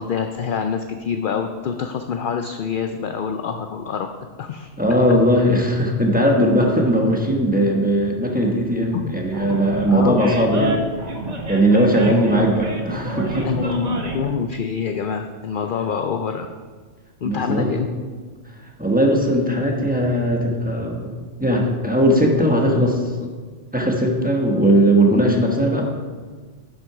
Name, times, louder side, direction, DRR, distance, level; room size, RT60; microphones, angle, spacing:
voice 1, 0.0-4.1 4.4-4.7 8.9-9.1 9.9-10.3 10.6-10.9 12.0-13.0 13.4-16.5 17.2-17.9, left 6 dB, 60° left, 6 dB, 0.6 m, -26 dB
voice 2, 4.8-10.7 11.5-13.6 17.2-17.8 18.8-21.1 21.4-23.3 23.7-25.8, equal, 10° right, -1 dB, 1.1 m, -18 dB
Animal, 9.3-14.3, right 2 dB, 40° right, 0.9 m, -30 dB
10.5 x 6.1 x 4.8 m, 1.5 s
omnidirectional pair, 1.2 m